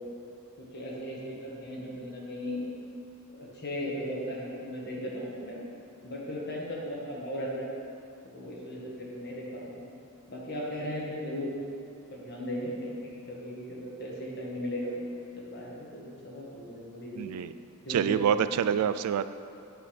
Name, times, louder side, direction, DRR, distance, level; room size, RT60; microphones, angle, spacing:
voice 1, 0.7-2.6 3.4-5.6 6.0-7.8 8.2-9.8 10.3-11.5 12.1-15.1 15.4-17.3 17.8-18.5, equal, 50° left, -4 dB, 1.6 m, -37 dB
voice 2, 17.2-17.5 17.9-19.3, right 8 dB, 85° right, 15 dB, 0.3 m, -26 dB
9.8 x 3.4 x 5.6 m, 2.6 s
head